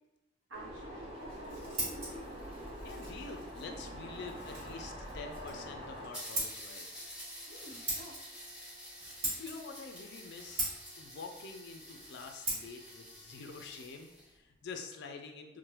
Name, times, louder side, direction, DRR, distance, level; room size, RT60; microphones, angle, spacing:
sound 1, 0.5-6.1, equal, 30° right, 0.6 m, -44 dB
voice 1, 0.5-2.2 7.5-8.2, right 1 dB, 80° right, -4 dB, 1.0 m, -51 dB
sound 2, 1.2-3.9 4.8-4.9 5.1-5.2 5.6-5.7 6.1-14.3, equal, 5° right, 1.2 m, -49 dB
Scissors, 1.2-14.7, right 1 dB, 50° right, 1.4 m, -43 dB
voice 2, 2.8-7.0 9.4-10.7 11.0-15.6, left 4 dB, 60° left, 4 dB, 0.4 m, -47 dB
3.1 x 2.1 x 2.9 m, 1.0 s
head